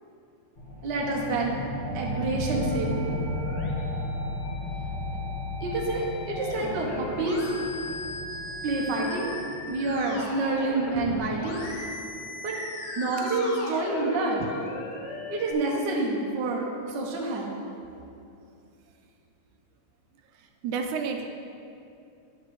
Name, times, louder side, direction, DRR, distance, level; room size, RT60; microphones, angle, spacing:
sound 1, 0.6-11.6, left 1 dB, 30° left, 0.9 m, -35 dB
voice 1, 0.8-1.5 1.9-3.2 5.6-7.8 8.6-9.3 9.7-11.7 12.4-12.6 13.0-14.5 15.3-17.5, right 2 dB, 55° right, -2 dB, 1.3 m, -28 dB
Musical instrument, 2.5-15.5, left 2 dB, 75° left, 2.2 m, -38 dB
voice 2, 20.6-21.3, right 5 dB, 80° right, 4 dB, 1.9 m, -30 dB
9.9 x 6.5 x 4.8 m, 2.6 s
omnidirectional pair, 3.5 m